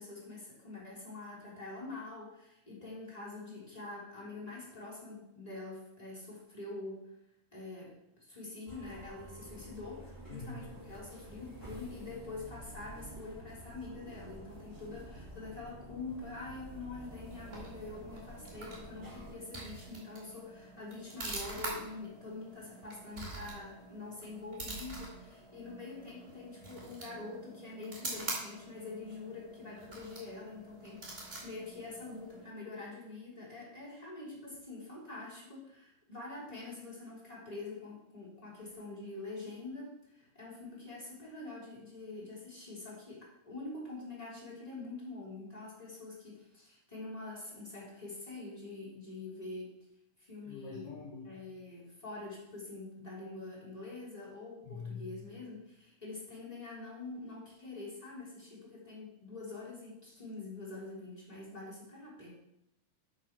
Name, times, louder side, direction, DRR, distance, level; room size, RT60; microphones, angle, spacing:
voice 1, 0.0-7.0 7.5-49.7 50.2-50.9 51.2-62.3, left 3 dB, 10° left, -6 dB, 3.2 m, -45 dB
sound 1, 8.7-19.3, right 1 dB, 5° right, 2.4 m, -50 dB
voice 2, 10.3-10.7 50.5-51.4 54.7-55.3, left 4 dB, 65° left, -1 dB, 2.1 m, -45 dB
sound 2, 17.0-32.6, right 2 dB, 25° right, 2.5 m, -46 dB
8.5 x 5.8 x 6.0 m, 0.81 s
omnidirectional pair, 3.5 m